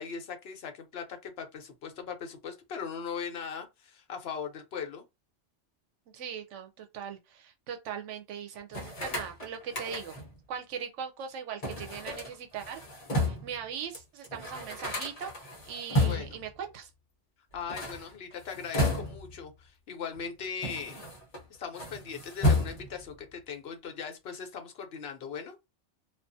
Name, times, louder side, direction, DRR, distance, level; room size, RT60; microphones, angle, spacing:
voice 1, 0.0-5.0 16.0-16.4 17.5-21.0 21.5-25.6, left 6 dB, 65° left, 0.9 m, -39 dB
voice 2, 6.1-10.2 10.5-12.8 13.1-16.9, right 7 dB, 85° right, 0.9 m, -40 dB
sound 1, 8.7-10.4 11.6-13.6 13.9-14.0 14.2-16.5 17.5-19.4 20.1-21.4 21.7-23.1, left 1 dB, 35° left, 0.8 m, -32 dB
2.4 x 2.4 x 2.6 m
omnidirectional pair, 1.2 m